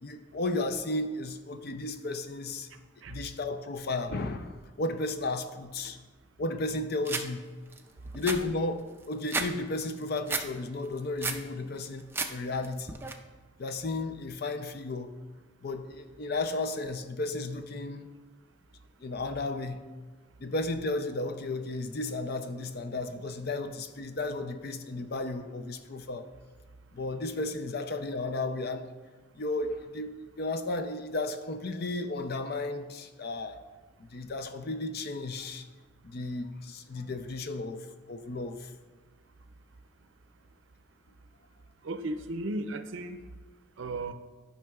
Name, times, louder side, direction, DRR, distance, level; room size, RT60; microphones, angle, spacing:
voice 1, 0.0-2.7 3.1-6.0 6.4-7.4 8.1-13.0 13.6-15.1 15.6-18.1 19.0-19.8 20.4-26.3 26.9-28.9 29.3-33.6 34.0-35.6 36.0-38.7, left 2 dB, 50° left, 9 dB, 0.5 m, -34 dB
sound 1, 7.1-7.3 7.7-7.8 8.1-9.5 9.8-10.5 10.9-11.4 11.8-12.3 12.6-13.1, right 4 dB, 10° right, 0.4 m, -32 dB
voice 2, 41.8-43.2 43.8-44.1, right 2 dB, 70° right, 8 dB, 0.5 m, -35 dB
12.0 x 5.5 x 2.4 m, 1.3 s
head